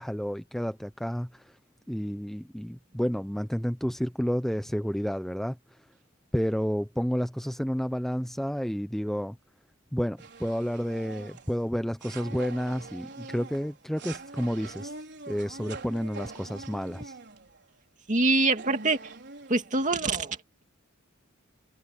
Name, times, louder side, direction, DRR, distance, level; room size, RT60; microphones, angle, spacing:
voice 1, 0.0-1.5 1.9-5.6 6.3-9.4 9.9-14.9 15.3-17.2, equal, ahead, 0.7 m, -30 dB
sound 1, 10.2-17.7 18.2-18.3 18.5-19.8, right 3 dB, 60° right, 4.6 m, -44 dB
voice 2, 18.1-19.1 19.5-20.4, right 2 dB, 40° right, 2.3 m, -25 dB
head